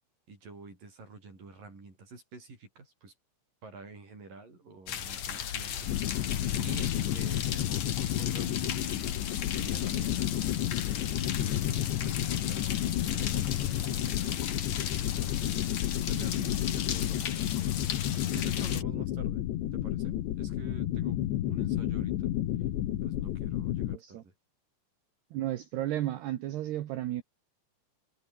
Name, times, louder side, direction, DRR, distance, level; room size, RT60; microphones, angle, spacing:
voice 1, 0.3-3.1 3.6-6.3 6.6-10.5 10.9-14.3 15.0-15.7 16.1-19.4 19.7-22.3 23.0-24.3, right 3 dB, 45° right, 9.3 m, -48 dB
sound 1, 4.9-18.8, left 9 dB, 50° left, 2.3 m, -36 dB
sound 2, 5.9-24.0, left 13 dB, 70° left, 3.7 m, -31 dB
voice 2, 23.9-24.2 25.3-27.2, right 13 dB, 65° right, 3.1 m, -33 dB
omnidirectional pair, 5.6 m